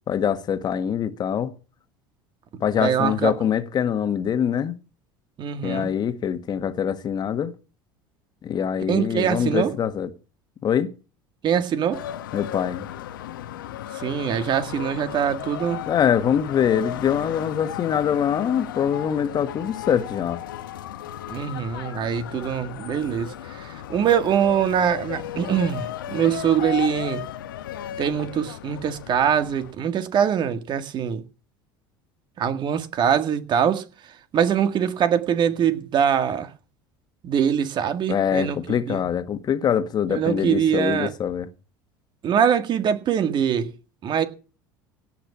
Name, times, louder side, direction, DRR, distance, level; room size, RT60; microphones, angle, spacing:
voice 1, 0.1-1.5 2.6-4.7 5.6-7.5 8.4-10.1 10.6-10.9 12.3-12.9 15.9-20.4 38.1-41.5, left 8 dB, 40° left, 1.6 m, -24 dB
voice 2, 2.8-3.3 5.4-5.9 8.9-9.7 11.4-12.0 13.9-15.8 21.3-27.2 28.0-31.2 32.4-36.5 37.2-39.0 40.1-41.1 42.2-43.7 44.0-44.2, right 8 dB, 45° right, 1.9 m, -23 dB
sound 1, 11.9-29.7, left 11 dB, 80° left, 1.3 m, -35 dB
17.0 x 5.9 x 8.5 m
hypercardioid pair, 75°, 11 cm